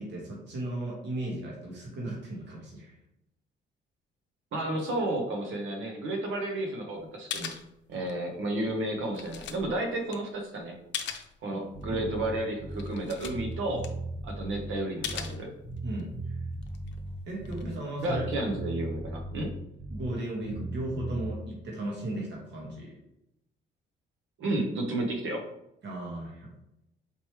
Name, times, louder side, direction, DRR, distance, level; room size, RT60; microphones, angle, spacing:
voice 1, 0.0-2.9 11.5-11.6 11.9-12.0 15.8-16.4 17.3-18.2 19.9-23.0 25.8-26.5, right 1 dB, 60° right, -3 dB, 1.6 m, -36 dB
voice 2, 4.5-7.5 7.9-10.7 11.4-13.8 14.2-15.5 18.0-19.5 24.4-25.4, right 1 dB, 80° right, 2 dB, 1.1 m, -32 dB
sound 1, 7.0-7.1 7.3-8.3 8.7-11.4 11.8-11.9 12.4-12.5 12.7-14.4 15.0-16.0 16.5-18.7, left 8 dB, 65° left, 0.6 m, -40 dB
Bass guitar, 11.7-13.0 13.2-15.4 15.6-17.8 18.0-20.2 20.4-21.3, right 2 dB, 15° right, 1.1 m, -37 dB
5.1 x 3.2 x 3.1 m, 0.83 s
cardioid pair, 90°, 20 cm